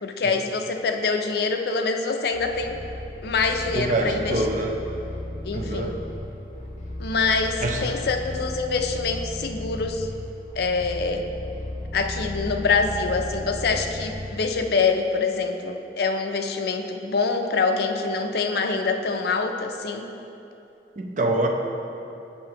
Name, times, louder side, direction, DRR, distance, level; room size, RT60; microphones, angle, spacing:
voice 1, 0.0-2.8 3.2-4.4 5.4-5.9 7.0-10.1 10.6-11.3 11.9-20.1, left 4 dB, 60° left, 5 dB, 0.4 m, -25 dB
sound 1, 2.3-14.8, left 1 dB, 40° left, 0.9 m, -35 dB
voice 2, 3.7-4.8 5.5-6.0 7.6-7.9 21.0-21.5, right 2 dB, 45° right, 2 dB, 0.5 m, -25 dB
7.6 x 5.6 x 2.9 m, 2.8 s
head